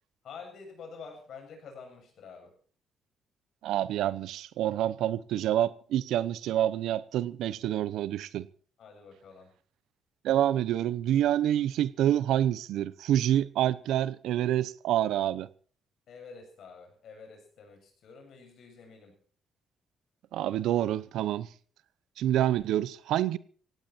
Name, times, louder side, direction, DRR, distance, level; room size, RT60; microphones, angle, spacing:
voice 1, 0.2-2.5 8.8-9.5 16.1-19.1, left 5 dB, 65° left, 7.5 m, -48 dB
voice 2, 3.6-8.5 10.2-15.5 20.3-21.5 22.2-23.4, right 12 dB, 85° right, 0.8 m, -27 dB
17.5 x 16.5 x 4.3 m
cardioid pair, 90°, 0 cm